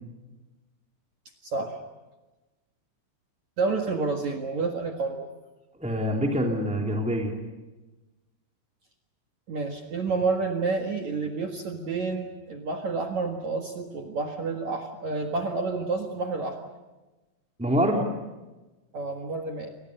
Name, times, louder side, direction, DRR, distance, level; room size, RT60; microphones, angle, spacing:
voice 1, 1.4-1.8 3.6-5.3 9.5-16.6 18.9-19.7, right 4 dB, 60° right, 3 dB, 1.9 m, -29 dB
voice 2, 5.8-7.4 17.6-18.0, equal, 5° right, 1 dB, 1.2 m, -25 dB
30.0 x 24.0 x 6.7 m, 1.1 s
omnidirectional pair, 5.8 m